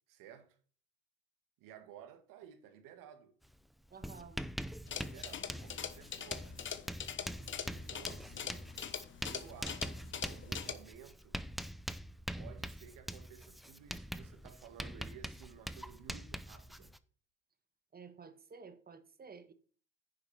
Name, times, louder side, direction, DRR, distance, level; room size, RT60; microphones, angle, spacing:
voice 1, 0.1-0.6 1.6-3.3 4.9-6.5 7.7-8.7 9.2-11.4 12.4-16.9, right 9 dB, 55° right, 2.1 m, -55 dB
Writing, 3.4-3.6 3.8-17.0, equal, ahead, 0.6 m, -44 dB
voice 2, 3.9-4.4 17.9-19.5, right 5 dB, 25° right, 1.6 m, -52 dB
sound 1, 4.9-10.7, left 8 dB, 30° left, 1.2 m, -43 dB
10.5 x 6.8 x 4.3 m
hypercardioid pair, 75°, 37 cm